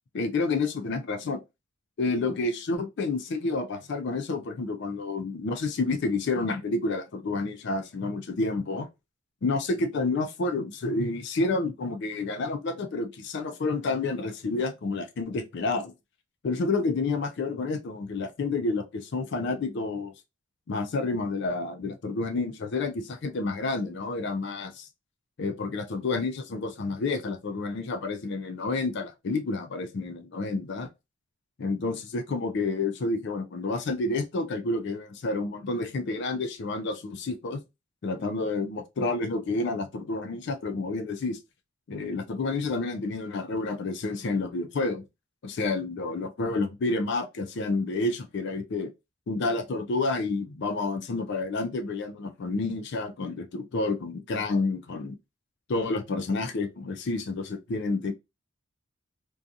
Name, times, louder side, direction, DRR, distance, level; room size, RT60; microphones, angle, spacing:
voice 1, 0.1-1.4 2.0-8.9 9.4-15.9 16.4-20.1 20.7-24.9 25.4-30.9 31.6-37.6 38.0-41.4 41.9-45.0 45.4-48.9 49.3-55.2 55.7-58.1, left 3 dB, 55° left, 0.4 m, -29 dB
2.6 x 2.3 x 2.4 m
head